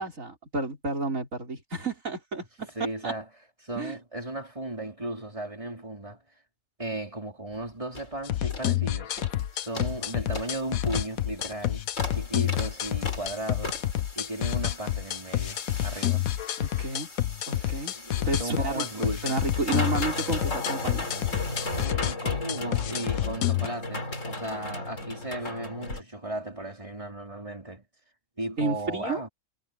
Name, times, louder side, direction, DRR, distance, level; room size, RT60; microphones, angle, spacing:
voice 1, 0.0-2.7 3.0-3.1 3.8-4.0 15.9-16.1 16.6-17.1 17.5-17.9 18.3-18.9 19.2-21.1 28.6-29.2, right 3 dB, 70° right, 5.3 m, -31 dB
voice 2, 2.7-3.3 3.6-6.2 6.8-9.2 9.5-11.8 12.1-13.8 14.1-16.2 17.5-19.4 21.7-27.8 28.4-29.3, right 1 dB, 25° right, 4.8 m, -35 dB
sound 1, 7.5-7.6 7.9-8.1 8.5-8.7 9.2-9.4 9.7-26.0, left 2 dB, 65° left, 4.5 m, -37 dB
sound 2, 8.2-23.7, left 12 dB, 80° left, 1.2 m, -29 dB
omnidirectional pair, 1.4 m